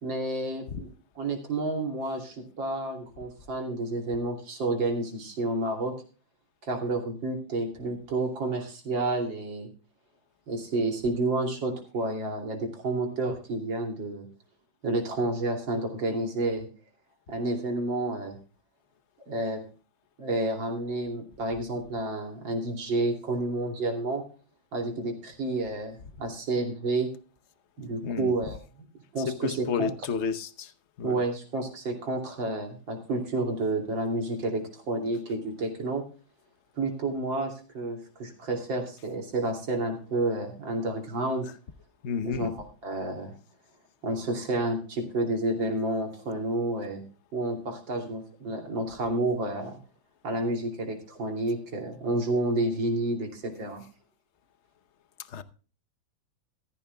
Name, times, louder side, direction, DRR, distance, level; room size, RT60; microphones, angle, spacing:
voice 1, 0.0-0.9 1.2-5.9 6.6-9.7 10.5-14.3 14.8-16.7 17.3-18.4 19.3-19.6 20.2-24.2 24.7-27.1 27.8-28.9 29.1-29.9 31.0-36.0 36.8-41.5 42.2-42.5 42.8-43.3 44.0-47.0 47.3-49.8 50.2-53.8, right 2 dB, 80° right, 2 dB, 3.6 m, -30 dB
voice 2, 29.3-30.7 31.0-31.2 42.0-42.5 55.3-55.4, left 6 dB, 50° left, 13 dB, 0.9 m, -31 dB
14.5 x 14.5 x 2.2 m, 0.35 s
omnidirectional pair, 2.0 m